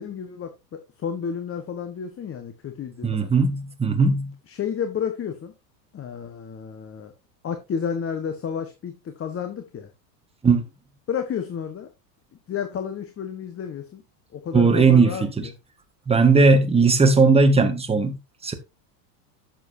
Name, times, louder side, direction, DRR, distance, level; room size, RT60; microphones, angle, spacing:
voice 1, 0.0-3.3 4.5-5.5 5.9-7.1 7.4-9.9 11.1-11.9 12.5-14.0 14.3-15.5, left 7 dB, 25° left, 1.3 m, -31 dB
voice 2, 3.0-4.3 10.4-10.6 14.5-15.5 16.1-18.2 18.4-18.5, right 4 dB, 10° right, 1.6 m, -18 dB
11.0 x 7.5 x 2.7 m
supercardioid pair, 120°, 49 cm